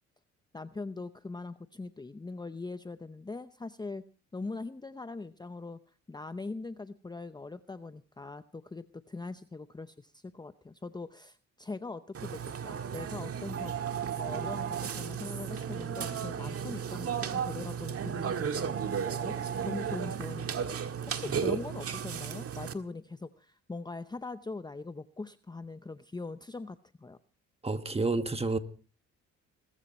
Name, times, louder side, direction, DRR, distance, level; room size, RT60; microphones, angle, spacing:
voice 1, 0.5-4.0 4.3-5.8 6.1-12.4 12.6-13.7 14.2-20.7 21.1-27.2, left 3 dB, 15° left, 11 dB, 0.7 m, -41 dB
Burping eructation, 12.1-22.7, right 7 dB, 50° right, 1.7 m, -34 dB
voice 2, 27.6-28.6, right 3 dB, 20° right, 9 dB, 1.7 m, -30 dB
20.5 x 14.0 x 4.3 m, 0.38 s
cardioid pair, 90°, 30 cm